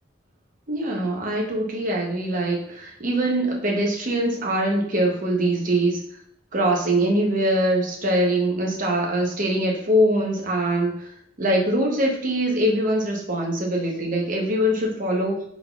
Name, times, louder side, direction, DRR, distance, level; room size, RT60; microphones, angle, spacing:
voice 1, 0.7-6.0 6.5-11.1 11.4-15.4, right 1 dB, 40° right, -1 dB, 0.8 m, -23 dB
3.8 x 3.8 x 2.3 m, 0.66 s
head